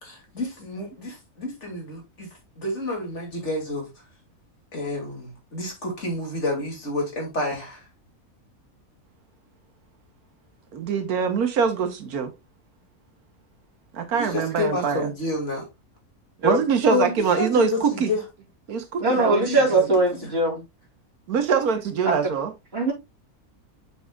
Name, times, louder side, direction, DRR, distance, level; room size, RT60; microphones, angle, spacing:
voice 1, 0.0-2.3 2.6-3.9 4.7-7.8 14.1-15.7 16.9-18.2 19.0-19.1 19.5-19.6, left 2 dB, 50° left, 2.8 m, -29 dB
voice 2, 10.7-12.3 13.9-15.1 16.4-18.1 18.7-19.5 21.3-22.5, right 6 dB, 90° right, 1.6 m, -23 dB
voice 3, 19.0-20.6 22.0-22.1 22.7-22.9, right 2 dB, 45° right, 3.1 m, -21 dB
7.0 x 7.0 x 2.3 m
omnidirectional pair, 1.5 m